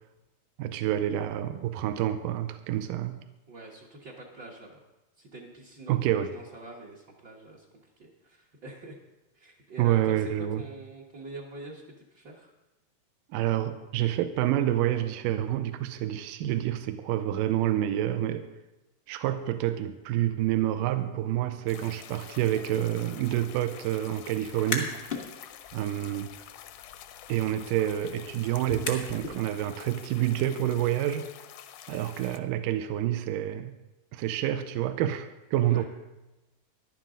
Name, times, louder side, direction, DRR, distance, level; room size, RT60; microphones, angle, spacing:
voice 1, 0.6-3.2 5.9-6.3 9.8-10.6 13.3-18.5 19.1-24.9 25.7-26.3 27.3-31.3 31.9-33.8 34.1-35.9, right 12 dB, 85° right, 9 dB, 2.3 m, -28 dB
voice 2, 3.5-4.8 5.2-7.7 8.0-9.0 9.3-12.5 35.6-35.8, right 2 dB, 55° right, -4 dB, 1.2 m, -45 dB
sound 1, 21.7-32.4, left 11 dB, 75° left, 1.9 m, -48 dB
sound 2, 24.6-25.2 25.6-29.4, left 3 dB, 40° left, 0.8 m, -38 dB
15.0 x 11.0 x 3.7 m, 1.0 s
omnidirectional pair, 3.9 m